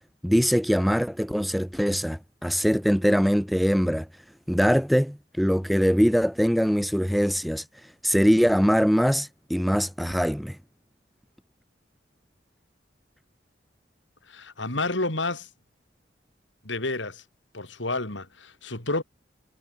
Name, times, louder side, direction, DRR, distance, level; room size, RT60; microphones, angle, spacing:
voice 1, 0.2-4.1 4.5-7.6 8.0-10.6, equal, ahead, 0.5 m, -22 dB
voice 2, 14.3-15.5 16.6-17.2 17.5-19.0, left 2 dB, 85° left, 4.6 m, -30 dB
head